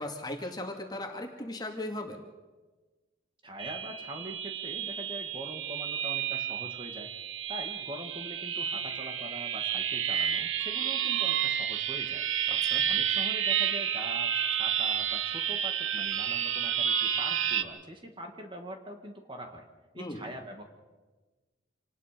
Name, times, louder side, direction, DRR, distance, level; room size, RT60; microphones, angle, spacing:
voice 1, 0.0-2.2 12.5-12.8 20.0-20.3, left 1 dB, 20° left, 3 dB, 2.2 m, -37 dB
voice 2, 3.4-7.1 7.5-12.2 12.9-19.7 19.9-20.6, equal, 25° right, 4 dB, 2.2 m, -43 dB
sound 1, 3.6-17.6, right 9 dB, 85° right, 1.2 m, -30 dB
27.0 x 19.0 x 5.3 m, 1.2 s
head